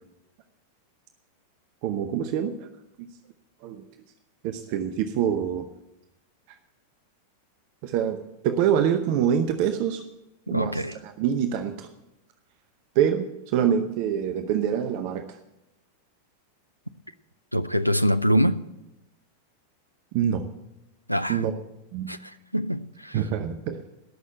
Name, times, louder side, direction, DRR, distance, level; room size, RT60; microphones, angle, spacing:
voice 1, 1.8-2.7 3.0-3.1 3.6-3.8 4.4-5.7 6.5-6.6 7.8-8.2 8.4-10.0 10.5-11.9 12.9-15.4 20.1-20.4 21.3-21.5 21.9-22.1 23.1-23.9, right 9 dB, 45° right, 0.8 m, -25 dB
voice 2, 10.5-11.0 17.5-18.6 21.1-21.4 22.1-23.2, equal, 90° right, 0.5 m, -24 dB
18.5 x 6.4 x 7.7 m
figure-of-eight pair, 90°, 0 cm